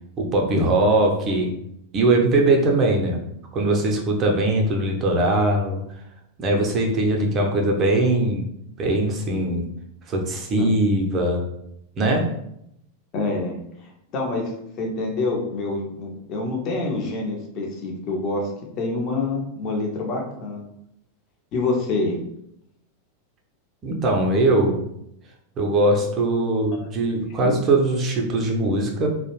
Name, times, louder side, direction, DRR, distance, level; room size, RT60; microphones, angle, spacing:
voice 1, 0.2-1.5 1.9-3.2 3.5-5.8 6.4-8.5 8.8-9.7 10.1-11.4 12.0-12.3 23.8-24.9 25.6-29.1, right 2 dB, 30° right, 1 dB, 0.5 m, -21 dB
voice 2, 10.5-11.0 13.1-13.5 14.1-18.5 18.8-20.7 21.5-22.2 27.4-27.5, left 3 dB, 35° left, 0 dB, 0.6 m, -26 dB
2.4 x 2.0 x 3.0 m, 0.78 s
figure-of-eight pair, 90°, 0 cm